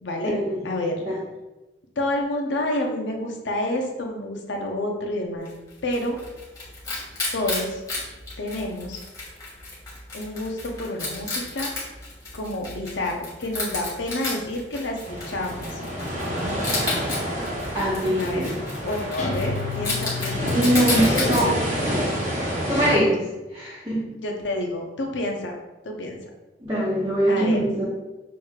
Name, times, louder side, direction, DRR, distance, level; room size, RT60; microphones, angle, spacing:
voice 1, 0.0-1.0 2.0-5.5 5.8-6.2 7.3-7.8 8.4-9.0 10.1-11.7 12.3-15.8 18.2-18.5 18.8-21.6 22.8-23.1 24.2-25.6 25.8-26.2 27.3-27.6, left 1 dB, 80° left, 1 dB, 0.8 m, -29 dB
Wild animals, 5.5-21.4, left 2 dB, 20° left, 1.4 m, -33 dB
sound 1, 15.1-23.0, equal, 45° right, 0.9 m, -28 dB
voice 2, 17.7-18.6 20.5-21.5 22.7-23.2 23.5-24.0 26.6-27.8, right 1 dB, 20° right, -9 dB, 1.1 m, -22 dB
Guitar, 19.2-21.8, left 4 dB, 40° left, 0.8 m, -32 dB
6.1 x 3.2 x 2.4 m, 1.1 s
head